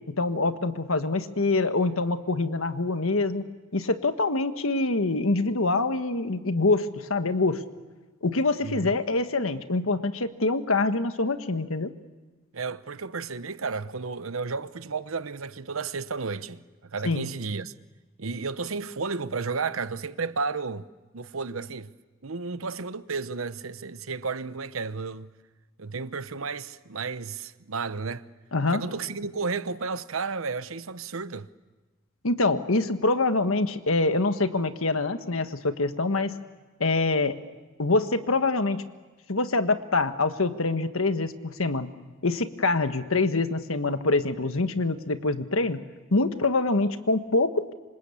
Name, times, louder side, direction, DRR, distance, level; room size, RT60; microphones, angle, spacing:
voice 1, 0.2-7.6 8.2-11.9 17.0-17.3 28.5-28.8 32.2-36.3 36.8-37.4 37.8-38.8 39.3-41.9 42.2-45.8 46.1-47.7, left 3 dB, 80° left, 1.5 m, -25 dB
voice 2, 8.6-9.0 12.5-17.7 18.2-20.9 21.1-21.9 22.2-25.3 25.8-28.3 28.7-31.5, right 4 dB, 75° right, 0.9 m, -32 dB
26.5 x 26.0 x 8.4 m
head